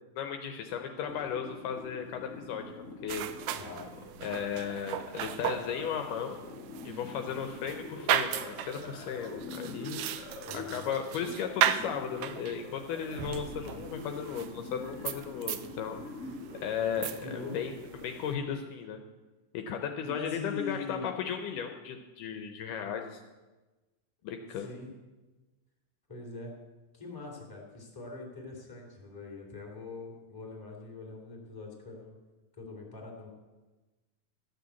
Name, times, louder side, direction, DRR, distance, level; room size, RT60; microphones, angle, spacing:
voice 1, 0.2-3.3 4.2-6.4 6.8-16.0 16.6-17.7 18.0-19.0 19.5-23.2 24.2-24.7, left 7 dB, 75° left, 5 dB, 2.2 m, -36 dB
sound 1, 1.1-18.3, left 3 dB, 40° left, 1.1 m, -45 dB
sound 2, 3.1-18.4, right 11 dB, 80° right, 2.3 m, -36 dB
voice 2, 3.5-3.9 10.4-10.9 17.2-17.6 20.0-21.1 24.2-24.9 26.1-26.5 26.9-32.2 32.6-33.3, left 3 dB, 5° left, -1 dB, 2.0 m, -42 dB
13.5 x 6.6 x 8.3 m, 1.2 s
omnidirectional pair, 4.1 m